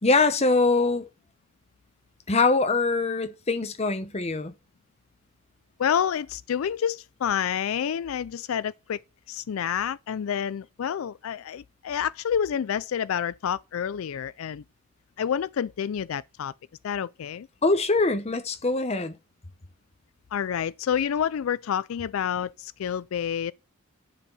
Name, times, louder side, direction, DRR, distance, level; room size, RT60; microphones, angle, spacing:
voice 1, 0.0-1.0 2.3-4.5 17.6-19.1, left 3 dB, 30° left, 0.8 m, -23 dB
voice 2, 5.8-9.0 9.3-14.6 15.2-16.5 16.8-17.5 20.3-23.5, left 8 dB, 85° left, 0.4 m, -28 dB
11.0 x 4.5 x 5.5 m
head